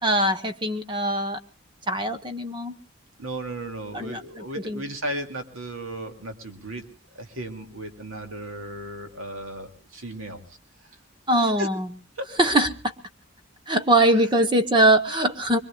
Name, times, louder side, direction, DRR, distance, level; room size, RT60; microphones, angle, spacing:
voice 1, 0.0-1.4 1.9-2.8 3.9-4.8 11.3-11.9 12.4-12.7 13.7-15.6, right 1 dB, 20° right, 10 dB, 1.0 m, -22 dB
voice 2, 3.2-6.8 7.1-10.9 11.3-11.7 12.2-12.3, right 1 dB, 70° right, 5 dB, 2.5 m, -35 dB
24.5 x 23.0 x 2.4 m, 0.37 s
head